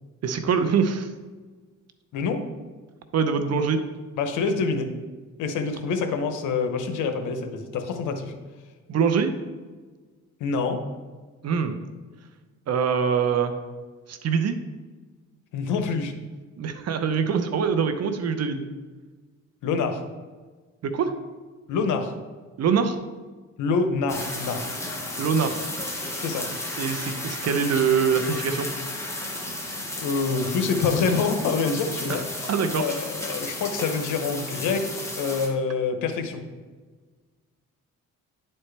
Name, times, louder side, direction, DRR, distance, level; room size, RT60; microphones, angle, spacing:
voice 1, 0.2-1.1 3.1-3.8 8.9-9.3 11.4-11.8 12.7-13.5 14.1-14.6 16.6-18.6 20.8-21.1 22.6-23.0 25.2-25.6 26.8-28.7 32.5-32.9, right 6 dB, 55° right, 8 dB, 0.8 m, -23 dB
voice 2, 2.1-2.4 4.2-4.9 5.4-8.3 10.4-10.8 15.5-16.1 19.6-20.0 21.7-22.1 23.6-24.7 26.2-26.5 30.0-36.4, left 4 dB, 80° left, 6 dB, 0.9 m, -26 dB
sound 1, 24.1-35.5, left 1 dB, 10° left, 1.4 m, -33 dB
10.0 x 4.4 x 3.3 m, 1.4 s
cardioid pair, 90°, 30 cm